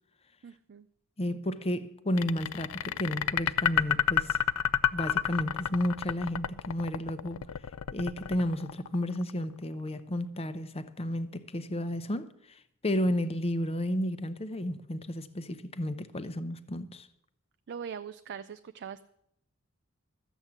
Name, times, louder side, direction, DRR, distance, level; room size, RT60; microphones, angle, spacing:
voice 1, 0.4-0.9 17.7-19.0, right 7 dB, 55° right, 0.4 m, -41 dB
voice 2, 1.2-4.4 4.9-7.4 7.9-12.3 12.8-17.1, left 1 dB, 30° left, 0.8 m, -32 dB
sound 1, 2.2-9.3, left 9 dB, 75° left, 0.4 m, -29 dB
13.0 x 8.1 x 7.3 m
head